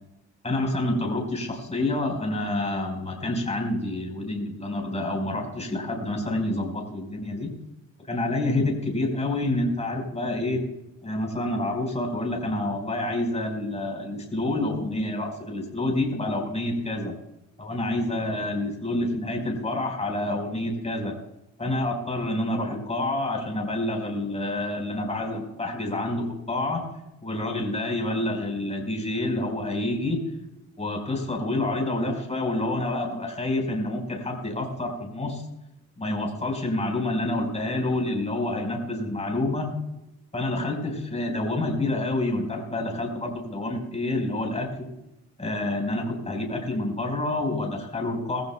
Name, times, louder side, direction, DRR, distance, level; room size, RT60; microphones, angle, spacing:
voice 1, 0.4-7.5 8.1-10.6 11.0-17.1 17.6-21.1 21.6-26.8 27.2-30.3 30.8-35.4 36.0-39.7 40.3-44.9 45.4-48.4, left 2 dB, 20° left, 2 dB, 4.5 m, -28 dB
20.5 x 15.0 x 2.3 m, 0.89 s
cardioid pair, 90°, 30 cm